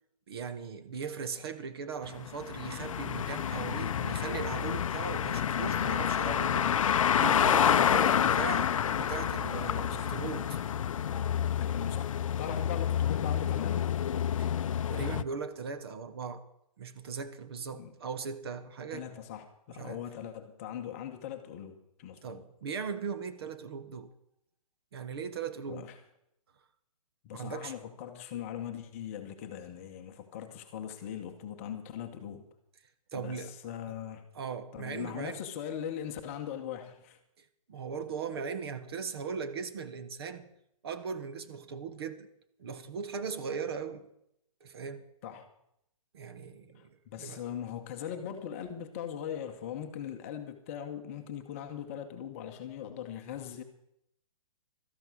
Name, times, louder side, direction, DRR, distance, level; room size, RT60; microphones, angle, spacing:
voice 1, 0.3-6.8 7.2-10.6 14.4-14.5 14.9-16.4 16.8-19.1 19.8-20.0 22.2-24.1 24.9-25.9 27.3-27.7 33.1-33.5 33.9-34.0 34.3-35.4 37.4-40.5 40.8-42.3 42.6-44.1 44.6-45.0 46.1-47.4, right 6 dB, 45° right, 1.1 m, -39 dB
sound 1, 2.0-15.2, left 9 dB, 60° left, 0.5 m, -28 dB
voice 2, 9.5-10.2 11.5-13.9 17.7-17.9 18.9-22.5 25.7-25.9 27.2-32.4 33.1-34.2 34.7-37.2 45.2-45.5 46.7-53.6, left 9 dB, 20° left, 1.0 m, -40 dB
13.0 x 11.0 x 6.2 m
hypercardioid pair, 165°, 19 cm